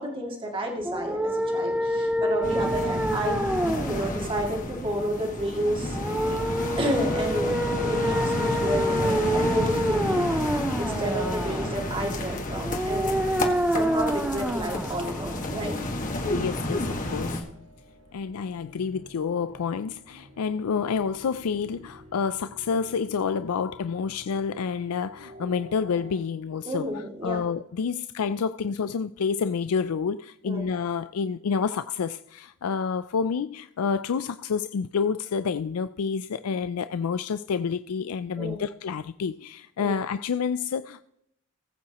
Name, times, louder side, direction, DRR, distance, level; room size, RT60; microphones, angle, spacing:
voice 1, 0.0-3.4 3.9-6.0 6.8-7.5 7.8-10.3 10.8-13.2 13.7-15.8 26.7-27.4 30.4-30.6 38.4-38.6 39.8-39.9, right 1 dB, 25° right, 2.3 m, -30 dB
sound 1, 0.8-15.8, equal, 5° right, 0.6 m, -28 dB
sound 2, 2.4-17.4, left 1 dB, 35° left, 1.7 m, -31 dB
sound 3, 6.8-26.2, equal, 70° right, 3.8 m, -50 dB
voice 2, 16.3-17.5 18.1-41.0, left 6 dB, 85° left, 0.4 m, -29 dB
20.0 x 8.6 x 3.0 m
head